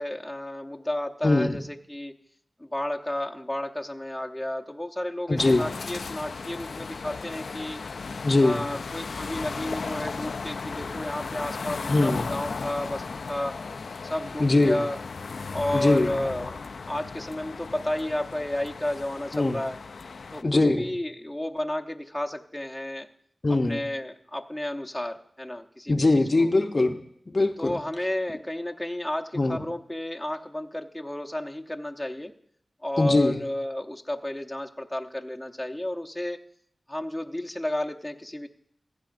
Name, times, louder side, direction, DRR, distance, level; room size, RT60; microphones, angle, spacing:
voice 1, 0.0-2.2 2.6-7.8 8.4-13.6 14.0-15.0 15.5-19.8 20.3-23.1 23.5-26.0 26.4-26.5 27.6-32.3 32.8-36.4 36.9-38.5, left 1 dB, 10° left, 2 dB, 0.7 m, -32 dB
voice 2, 1.2-1.6 5.3-5.7 8.2-8.7 11.9-12.3 14.4-14.8 15.7-16.2 19.3-19.6 20.4-20.9 23.4-23.8 25.9-27.0 27.3-27.7 29.3-29.6 33.0-33.4, left 2 dB, 45° left, 6 dB, 0.6 m, -22 dB
sound 1, 5.4-20.4, left 4 dB, 85° left, 0.3 m, -36 dB
15.5 x 9.6 x 2.5 m, 0.67 s
wide cardioid pair, 60°, 0 cm